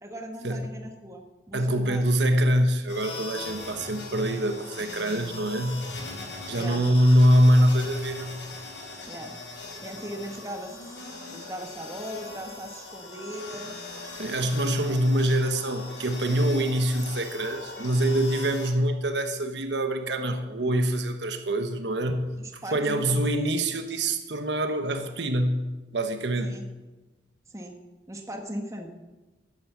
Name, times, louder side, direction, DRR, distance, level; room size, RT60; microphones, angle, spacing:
voice 1, 0.0-2.0 6.5-6.8 9.0-9.3 9.8-11.0 11.3-13.9 14.9-15.0 22.4-23.4 26.4-26.6 27.5-27.7 28.1-28.9, equal, 15° right, 3 dB, 1.4 m, -38 dB
voice 2, 1.5-5.9 6.5-8.5 14.2-25.7 25.9-26.5, right 1 dB, 75° right, 7 dB, 1.2 m, -24 dB
sound 1, 2.9-18.7, left 3 dB, 85° left, 5.0 m, -40 dB
12.5 x 9.6 x 7.4 m, 1.1 s
head